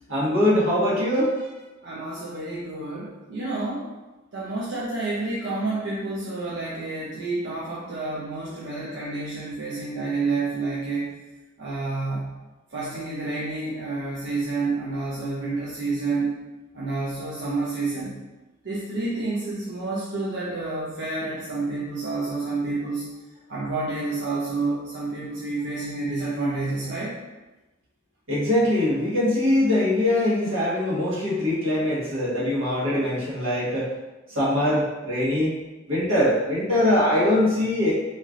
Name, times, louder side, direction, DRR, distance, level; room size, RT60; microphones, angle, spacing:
voice 1, 0.1-1.4 28.3-33.9 34.3-35.5 35.9-37.9, left 1 dB, 85° right, -7 dB, 1.4 m, -22 dB
voice 2, 1.8-3.9 4.3-11.1 11.6-12.4 12.7-16.3 16.7-18.2 18.6-23.1 23.5-27.2, right 3 dB, 65° right, -7 dB, 0.7 m, -29 dB
4.2 x 3.2 x 2.5 m, 1.1 s
head